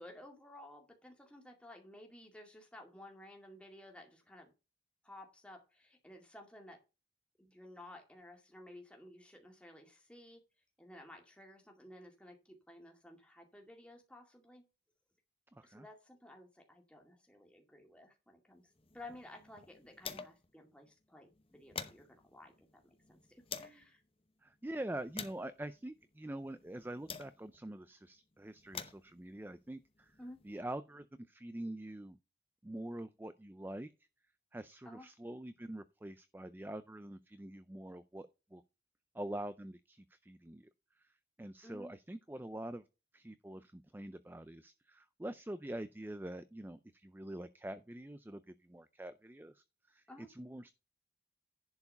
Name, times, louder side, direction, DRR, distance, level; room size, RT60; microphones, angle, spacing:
voice 1, 0.0-4.5 5.0-6.8 7.4-10.4 10.8-14.6 15.6-18.6 18.9-24.0 30.2-30.4 34.8-35.1 41.6-41.9 50.1-50.3, left 1 dB, 5° left, 2.2 m, -54 dB
voice 2, 15.5-15.9 20.1-20.3 24.4-30.2 30.4-32.2 32.6-33.9 34.5-38.6 39.1-42.8 43.1-50.7, right 1 dB, 10° right, 0.4 m, -45 dB
sound 1, 18.7-20.6 20.9-21.0 21.3-23.8 24.5-27.7 28.4-30.6, left 6 dB, 30° left, 0.9 m, -49 dB
11.0 x 4.7 x 5.3 m
head